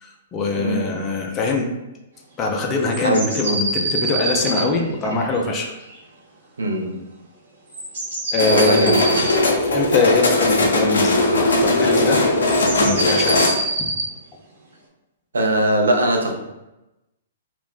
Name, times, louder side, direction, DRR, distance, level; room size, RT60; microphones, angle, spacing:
voice 1, 0.0-1.7 2.4-5.8 8.3-9.0 9.7-12.2 12.8-13.5 13.8-13.9, left 3 dB, 25° left, 1 dB, 0.4 m, -23 dB
voice 2, 0.6-0.9 3.0-3.3 5.0-5.2 6.6-7.0 8.4-9.3 15.3-16.3, right 1 dB, 80° right, 1 dB, 0.6 m, -21 dB
sound 1, 2.9-6.0 7.7-9.4 11.6-11.9 12.3-14.1, right 2 dB, 65° right, 0.9 m, -25 dB
sound 2, 8.4-13.5, left 2 dB, 75° left, 0.5 m, -18 dB
2.4 x 2.0 x 3.6 m, 0.97 s
hypercardioid pair, 120°, 0 cm